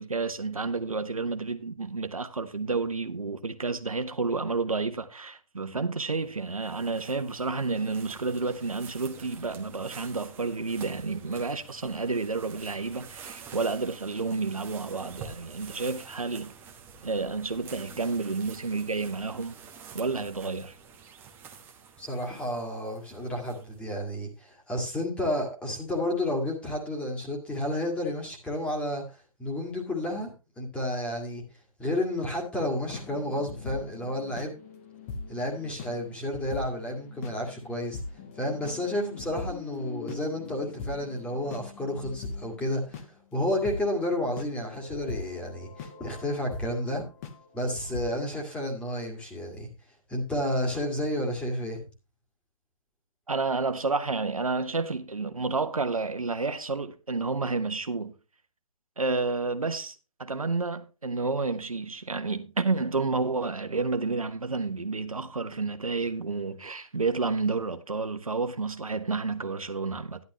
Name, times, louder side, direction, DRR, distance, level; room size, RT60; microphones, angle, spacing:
voice 1, 0.0-16.5 17.0-19.5 19.9-20.8 53.3-58.2 59.0-70.2, right 4 dB, 80° right, 1.2 m, -30 dB
sound 1, 6.1-23.9, right 6 dB, 10° right, 1.1 m, -48 dB
voice 2, 22.0-29.0 29.4-31.4 31.8-34.6 35.3-38.0 38.4-43.0 43.3-47.0 47.5-49.7 50.1-51.8, left 1 dB, 5° left, 2.1 m, -31 dB
sound 2, 32.9-43.1 43.5-43.8 44.4-46.8 47.1-47.4 47.8-48.1, left 4 dB, 25° left, 1.3 m, -41 dB
11.5 x 11.0 x 3.1 m
figure-of-eight pair, 140°, 18 cm